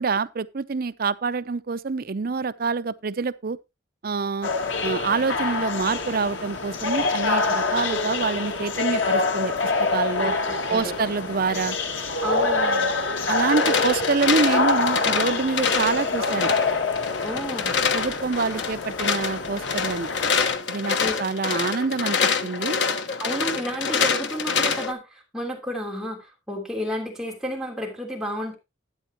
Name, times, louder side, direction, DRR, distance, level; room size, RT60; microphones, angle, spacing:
voice 1, 0.0-3.6 4.0-4.5 4.8-10.3 10.7-11.8 13.3-16.5 17.9-20.1 20.7-22.8, right 4 dB, 50° right, 0.5 m, -26 dB
sound 1, 4.4-20.5, left 3 dB, 85° left, 1.7 m, -26 dB
voice 2, 10.2-11.0 12.2-12.9 13.6-13.9 17.2-17.8 18.5-18.6 21.0-21.2 23.2-28.5, equal, 5° right, 3.1 m, -32 dB
sound 2, 13.3-24.9, left 5 dB, 65° left, 1.2 m, -26 dB
12.5 x 9.2 x 2.9 m
head